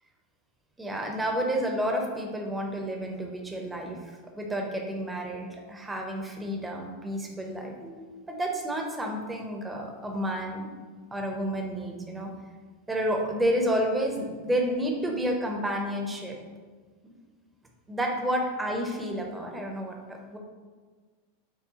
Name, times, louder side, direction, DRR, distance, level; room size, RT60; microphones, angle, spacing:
voice 1, 0.8-10.7 11.1-12.3 12.9-16.4 17.0-17.1 17.9-20.4, equal, 10° right, 2 dB, 0.6 m, -30 dB
5.3 x 2.2 x 2.8 m, 1.5 s
hypercardioid pair, 90°, 0 cm